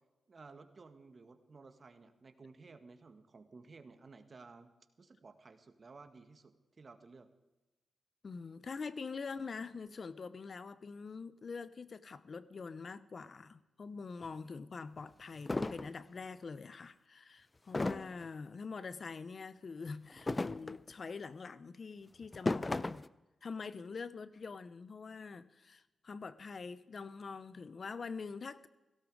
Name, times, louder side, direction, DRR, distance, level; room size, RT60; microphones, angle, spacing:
voice 1, 0.3-4.7 5.0-7.3, right 4 dB, 50° right, 1.8 m, -55 dB
voice 2, 8.2-23.0 23.4-28.7, left 4 dB, 55° left, 0.9 m, -45 dB
sound 1, 14.2-14.3 15.0-15.1 15.5-15.9 17.7-18.3 20.1-20.9 22.2-23.1, left 2 dB, 30° left, 0.6 m, -35 dB
17.0 x 16.5 x 4.9 m
cardioid pair, 55°, 0 cm